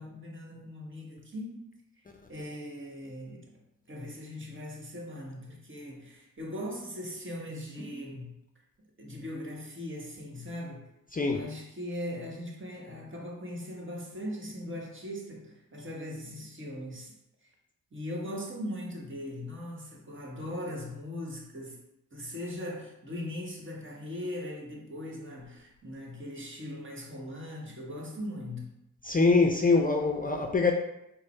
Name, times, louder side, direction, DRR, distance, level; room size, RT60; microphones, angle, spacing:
voice 1, 0.0-1.7 2.3-3.6 3.9-8.3 9.0-10.8 11.3-17.1 17.4-17.5 17.9-21.8 22.1-28.7, left 1 dB, 35° right, -1 dB, 1.3 m, -39 dB
voice 2, 11.1-11.5 29.0-30.7, left 3 dB, 25° left, 2 dB, 0.4 m, -24 dB
4.9 x 2.1 x 4.3 m, 0.84 s
cardioid pair, 55°, 33 cm